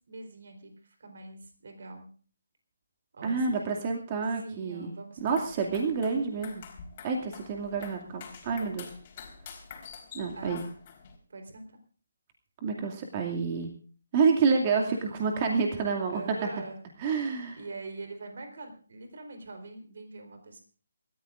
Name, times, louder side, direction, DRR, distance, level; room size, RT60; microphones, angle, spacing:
voice 1, 0.1-2.1 3.1-3.8 4.4-5.5 8.6-8.7 10.3-10.7 11.3-11.6 14.7-15.0 16.1-16.8 17.6-20.6, right 2 dB, 55° right, 5 dB, 4.0 m, -44 dB
voice 2, 3.2-4.9 5.2-6.6 7.0-8.9 10.1-10.6 12.6-13.7 14.1-16.2 17.0-17.6, right 5 dB, 30° right, 2 dB, 2.4 m, -28 dB
sound 1, 5.2-11.2, left 6 dB, 30° left, 4.1 m, -47 dB
28.0 x 14.0 x 2.6 m, 0.40 s
figure-of-eight pair, 150°, 0 cm